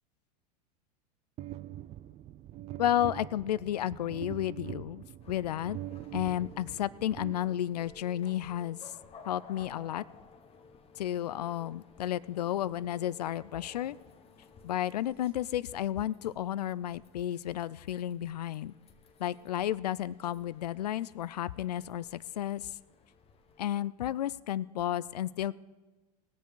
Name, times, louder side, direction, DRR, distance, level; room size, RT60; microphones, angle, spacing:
sound 1, 1.4-8.0, right 13 dB, 30° right, 0.4 m, -43 dB
voice 1, 2.8-5.8 6.1-8.8 9.3-10.0 10.9-14.0 14.6-18.7 19.2-22.7 23.6-25.5, left 12 dB, 75° left, 20 dB, 0.5 m, -32 dB
sound 2, 5.2-23.9, left 5 dB, 30° left, 1.2 m, -57 dB
20.0 x 6.8 x 4.7 m, 1.2 s
hypercardioid pair, 90°, 21 cm